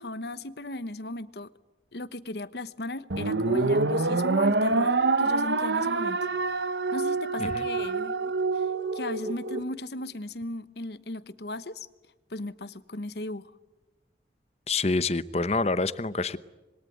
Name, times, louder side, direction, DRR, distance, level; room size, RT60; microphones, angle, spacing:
voice 1, 0.0-1.5 1.9-6.6 6.9-8.7 8.9-11.9 12.3-13.5, left 1 dB, 70° left, 1.1 m, -36 dB
sound 1, 3.1-9.6, right 3 dB, 85° right, 1.2 m, -26 dB
voice 2, 14.7-16.4, left 3 dB, 35° left, 0.9 m, -27 dB
26.5 x 22.5 x 9.3 m
head